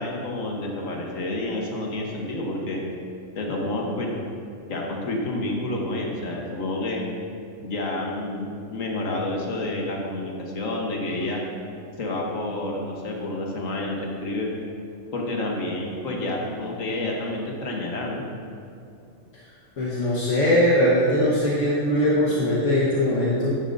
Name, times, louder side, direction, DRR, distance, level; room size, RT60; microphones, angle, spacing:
voice 1, 0.0-2.8 3.3-4.1 4.7-7.0 7.6-11.4 12.0-14.5 15.1-18.2, left 2 dB, 90° left, -1 dB, 1.5 m, -29 dB
voice 2, 19.8-23.6, left 1 dB, 70° left, -7 dB, 1.6 m, -21 dB
10.5 x 10.0 x 2.6 m, 2.5 s
omnidirectional pair, 1.3 m